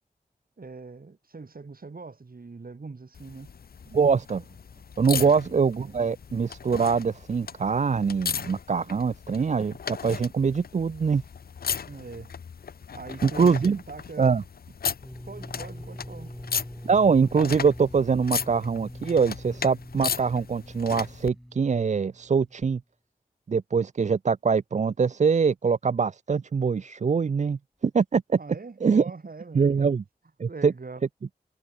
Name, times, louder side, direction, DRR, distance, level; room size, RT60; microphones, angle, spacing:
voice 1, 0.6-3.5 5.1-5.3 11.9-12.3 12.9-14.3 15.3-16.4 28.4-29.9 30.5-31.0, right 4 dB, 70° right, 5.6 m, -42 dB
sound 1, 3.1-21.3 22.6-22.7, left 6 dB, 80° left, 0.5 m, -36 dB
voice 2, 3.9-4.4 5.0-11.2 13.2-13.8 14.2-14.4 16.8-22.8 23.5-28.4 28.8-29.0 29.5-30.0 30.4-30.7, right 5 dB, 50° right, 0.4 m, -23 dB
sound 2, 15.0-22.7, equal, ahead, 2.4 m, -43 dB
wide cardioid pair, 55°, 16 cm